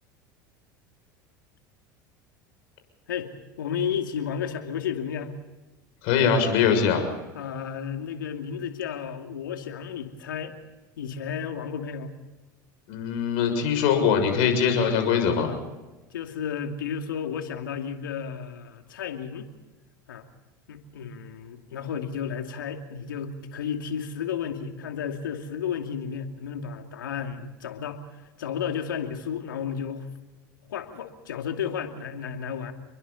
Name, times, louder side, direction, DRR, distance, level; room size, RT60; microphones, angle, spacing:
voice 1, 3.6-5.3 7.3-10.5 11.0-12.1 15.4-15.6 16.1-19.5 20.1-20.3 20.7-28.0 28.4-30.1 30.6-32.7, left 7 dB, 80° left, 5 dB, 2.6 m, -32 dB
voice 2, 6.0-7.0 12.9-15.5, left 7 dB, 60° left, 6 dB, 6.6 m, -22 dB
29.0 x 23.0 x 4.2 m, 1.1 s
hypercardioid pair, 80°, 11 cm